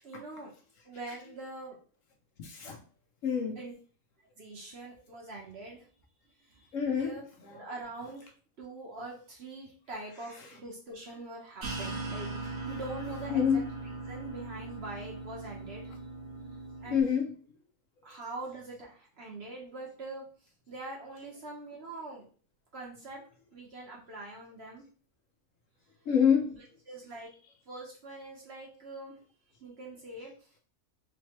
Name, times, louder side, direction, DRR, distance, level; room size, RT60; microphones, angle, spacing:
voice 1, 0.0-0.5 0.8-1.8 3.6-3.7 4.4-5.9 6.5-7.2 7.5-8.3 8.6-12.3 12.6-13.6 14.1-15.9 16.8-17.1 18.0-20.3 20.7-22.3 22.7-23.2 23.5-24.8 26.5-26.6 26.9-27.3 27.7-29.2 29.6-30.3, right 2 dB, 50° right, 1.1 m, -43 dB
voice 2, 2.4-2.8 3.2-3.6 6.7-7.2 13.3-13.6 16.9-17.3 26.1-26.5, left 7 dB, 65° left, 0.9 m, -26 dB
sound 1, 11.6-17.0, right 3 dB, 75° right, 1.2 m, -39 dB
3.6 x 3.0 x 2.9 m
omnidirectional pair, 1.6 m